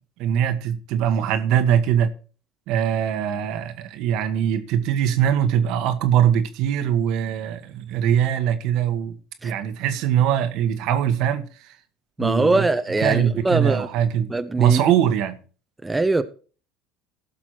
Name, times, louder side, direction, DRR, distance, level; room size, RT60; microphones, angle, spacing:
voice 1, 0.2-2.1 2.7-9.2 9.4-11.5 12.2-12.6 13.0-15.3, right 9 dB, 65° right, 1.4 m, -22 dB
voice 2, 12.2-13.9 14.3-14.8 15.8-16.2, right 2 dB, 15° right, 0.9 m, -22 dB
17.0 x 6.0 x 4.5 m
hypercardioid pair, 75°, 0 cm